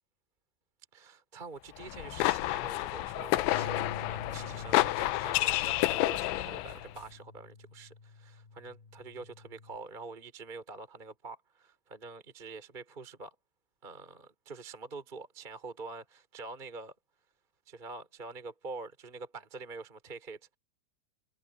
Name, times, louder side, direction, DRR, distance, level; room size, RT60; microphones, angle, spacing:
voice 1, 0.9-13.3 13.8-16.9 17.7-20.6, right 3 dB, 15° right, 2.1 m, -46 dB
sound 1, 1.8-6.9, left 18 dB, 80° left, 2.7 m, -30 dB
Bass guitar, 3.5-9.8, left 4 dB, 45° left, 7.8 m, -47 dB
omnidirectional pair, 5.9 m